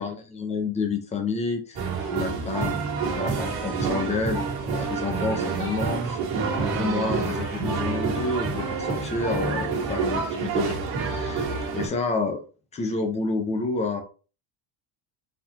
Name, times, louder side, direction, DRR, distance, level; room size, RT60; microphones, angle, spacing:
voice 1, 0.0-1.8 2.1-2.8 3.2-6.2 6.7-11.4 11.7-12.4 12.7-14.0, left 3 dB, 15° left, 4 dB, 0.7 m, -29 dB
sound 1, 1.8-11.9, right 5 dB, 55° right, 1.7 m, -28 dB
4.2 x 4.1 x 2.9 m, 0.35 s
cardioid pair, 165°, 45 cm